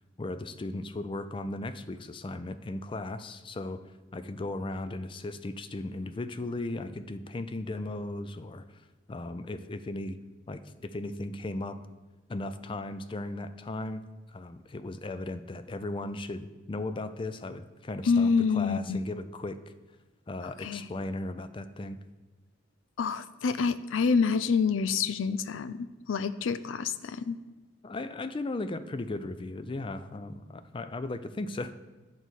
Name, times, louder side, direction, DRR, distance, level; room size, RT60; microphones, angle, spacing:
voice 1, 0.2-3.8 4.1-8.6 9.1-10.2 10.5-11.8 12.3-14.0 14.3-19.7 20.3-22.0 27.8-31.7, left 2 dB, 25° left, 11 dB, 0.4 m, -36 dB
voice 2, 18.1-19.0 20.6-20.8 23.0-27.4, left 5 dB, 90° left, 14 dB, 0.4 m, -27 dB
9.1 x 4.0 x 6.3 m, 1.2 s
head